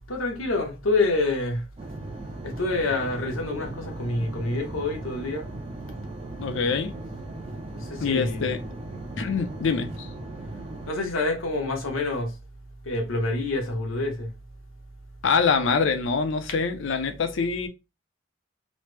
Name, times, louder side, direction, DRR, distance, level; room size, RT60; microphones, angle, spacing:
voice 1, 0.1-1.6 2.4-5.5 7.7-8.5 10.9-12.3 12.8-14.3, left 2 dB, 85° left, 0.9 m, -27 dB
sound 1, 1.8-10.9, right 2 dB, 30° right, 0.5 m, -38 dB
voice 2, 6.4-6.9 8.0-8.6 9.2-10.1 15.2-17.7, left 5 dB, 65° left, 0.5 m, -25 dB
3.1 x 2.0 x 3.1 m
head